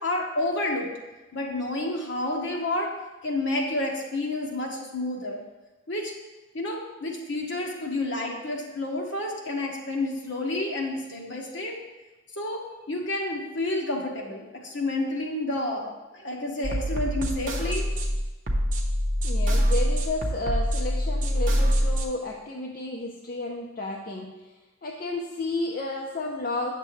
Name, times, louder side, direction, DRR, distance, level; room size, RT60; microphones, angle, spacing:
voice 1, 0.0-0.9 1.3-2.9 3.2-5.4 5.9-6.1 6.5-11.8 12.4-17.9, left 2 dB, 65° left, -1 dB, 1.3 m, -30 dB
sound 1, 16.6-22.0, equal, 40° right, 0.8 m, -25 dB
voice 2, 19.2-24.3 24.8-26.7, left 2 dB, 45° left, 0 dB, 0.5 m, -32 dB
8.6 x 6.7 x 3.2 m, 1.2 s
head